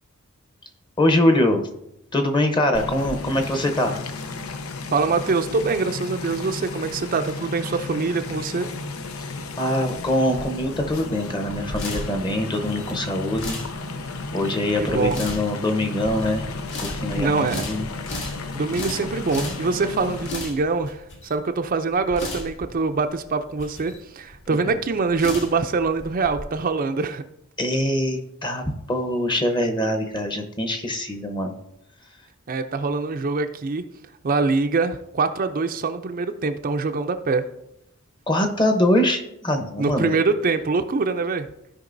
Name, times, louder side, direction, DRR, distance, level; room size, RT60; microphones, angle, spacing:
voice 1, 1.0-1.6 2.1-4.0 9.2-13.6 14.3-16.5 16.8-17.9 24.5-24.7 27.6-31.6 38.3-40.2, left 1 dB, 20° left, 5 dB, 0.9 m, -23 dB
sound 1, 2.7-20.3, left 3 dB, 85° left, 0.7 m, -33 dB
voice 2, 4.9-8.7 14.8-15.2 17.2-17.6 18.5-27.2 32.5-33.8 34.2-37.4 39.8-41.5, right 4 dB, 40° right, 7 dB, 0.5 m, -24 dB
sound 2, 9.9-26.4, left 2 dB, 60° left, 1.8 m, -36 dB
15.0 x 5.2 x 2.6 m, 0.83 s
head